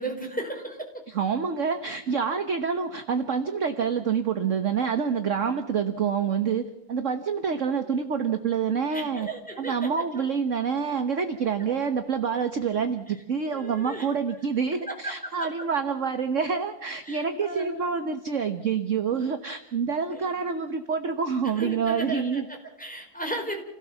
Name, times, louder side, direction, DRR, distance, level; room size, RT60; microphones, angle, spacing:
voice 1, 0.0-1.1 8.9-10.3 13.1-13.2 13.5-14.1 14.9-15.5 17.0-17.9 19.1-19.2 20.1-20.4 21.4-23.6, right 2 dB, 5° left, 1 dB, 4.6 m, -35 dB
voice 2, 1.1-9.3 9.6-22.4, right 6 dB, 45° right, 8 dB, 1.3 m, -27 dB
29.0 x 17.0 x 7.1 m, 0.84 s
omnidirectional pair, 2.3 m